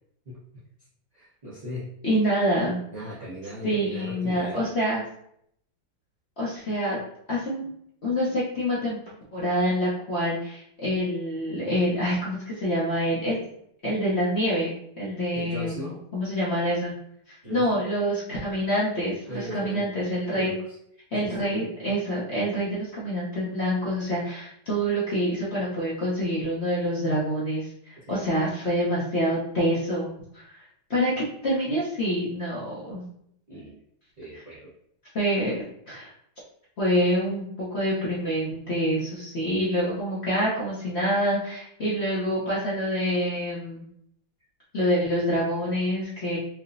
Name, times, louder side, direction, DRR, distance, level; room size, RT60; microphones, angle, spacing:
voice 1, 0.2-0.6 1.1-2.0 2.9-4.8 15.3-16.0 17.4-17.8 19.2-19.9 20.3-20.8 21.2-21.5 28.0-28.3 33.5-33.8 34.2-34.7, equal, 30° right, -9 dB, 0.8 m, -38 dB
voice 2, 2.0-2.8 3.6-5.0 6.4-7.0 7.3-7.7 8.0-9.0 9.3-13.4 13.8-16.9 17.3-20.5 21.1-30.6 30.9-31.1 31.4-33.0 34.3-34.4 35.1-36.1 36.8-43.9 44.7-46.4, equal, 50° left, -8 dB, 0.9 m, -26 dB
4.7 x 2.1 x 2.6 m, 0.71 s
omnidirectional pair, 2.0 m